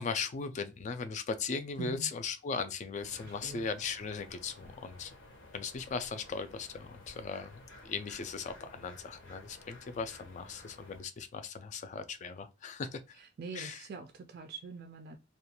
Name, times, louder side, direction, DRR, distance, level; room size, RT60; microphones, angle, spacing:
voice 1, 0.0-5.1 5.5-13.2 13.5-13.8, left 5 dB, 35° left, 0.3 m, -38 dB
voice 2, 1.8-2.1 3.2-3.7 13.1-15.2, right 4 dB, 50° right, 0.3 m, -44 dB
sound 1, 3.0-11.0, left 2 dB, 65° left, 0.7 m, -54 dB
2.4 x 2.2 x 2.8 m
head